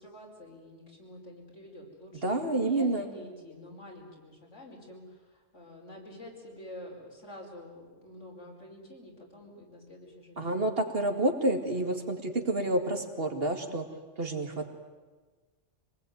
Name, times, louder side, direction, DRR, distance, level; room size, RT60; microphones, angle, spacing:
voice 1, 0.0-10.6 11.8-12.0, left 1 dB, 80° left, -1 dB, 5.3 m, -48 dB
voice 2, 2.2-3.1 10.4-13.9 14.2-14.7, right 1 dB, 50° right, 5 dB, 2.5 m, -29 dB
26.0 x 19.5 x 9.4 m, 1.4 s
omnidirectional pair, 1.2 m